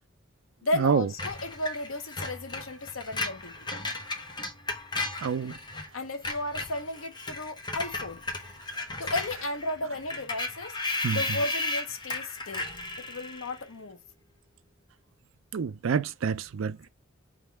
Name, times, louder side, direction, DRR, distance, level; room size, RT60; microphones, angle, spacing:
voice 1, 0.6-3.5 5.9-8.2 9.0-10.8 11.1-12.7 13.0-14.0, left 2 dB, 85° left, 0.9 m, -34 dB
Screech, 1.2-5.9 6.1-13.6, left 2 dB, 20° left, 0.9 m, -35 dB
voice 2, 5.2-5.5 11.0-11.2 15.5-16.9, right 6 dB, 75° right, 0.4 m, -27 dB
3.7 x 3.0 x 4.5 m
head